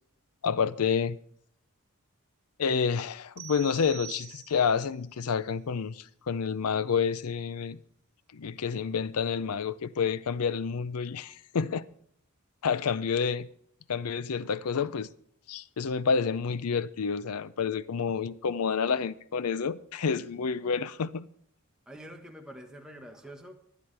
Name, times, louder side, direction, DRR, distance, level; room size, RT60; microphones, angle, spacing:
voice 1, 0.4-1.2 2.6-7.8 8.3-11.9 12.6-13.5 13.9-15.1 15.5-21.3, left 6 dB, 85° left, 0.5 m, -29 dB
sound 1, 3.4-4.9, right 13 dB, 60° right, 3.4 m, -45 dB
voice 2, 21.9-23.5, equal, 5° right, 1.2 m, -46 dB
19.0 x 11.0 x 3.4 m
head